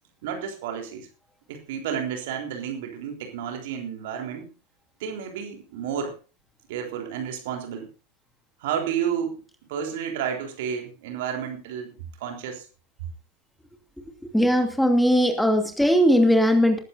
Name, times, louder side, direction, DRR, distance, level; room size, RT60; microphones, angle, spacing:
voice 1, 0.2-1.1 1.5-4.5 5.0-6.2 6.7-7.9 8.6-9.4 9.7-12.7, right 8 dB, 50° right, 4 dB, 3.6 m, -31 dB
voice 2, 14.3-16.8, equal, ahead, 4 dB, 2.6 m, -19 dB
19.5 x 14.5 x 2.7 m, 0.33 s
figure-of-eight pair, 90°, 0 cm